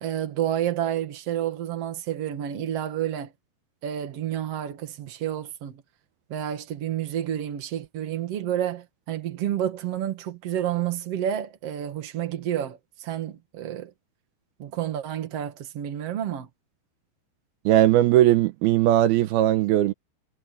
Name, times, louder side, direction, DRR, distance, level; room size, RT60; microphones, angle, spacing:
voice 1, 0.0-3.3 3.8-5.8 6.3-13.9 14.6-16.5, right 10 dB, 45° right, 2.5 m, -30 dB
voice 2, 17.7-19.9, right 13 dB, 80° right, 2.7 m, -19 dB
omnidirectional pair, 4.6 m